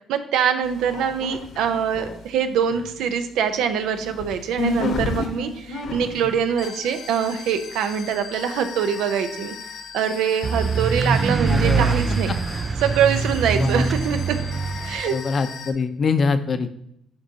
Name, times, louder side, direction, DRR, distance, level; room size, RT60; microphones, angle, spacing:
voice 1, 0.1-9.6 9.9-12.3 12.8-14.4 14.8-15.2, right 7 dB, 90° right, 8 dB, 0.7 m, -24 dB
sound 1, 0.6-2.3 2.6-15.7, left 4 dB, 75° left, 1.2 m, -34 dB
sound 2, 10.4-15.0, right 5 dB, 30° right, 0.3 m, -23 dB
voice 2, 11.5-12.0 13.6-13.8 15.1-16.7, left 4 dB, 45° left, 10 dB, 0.6 m, -23 dB
11.5 x 3.9 x 2.8 m, 0.73 s
cardioid pair, 110°, 0 cm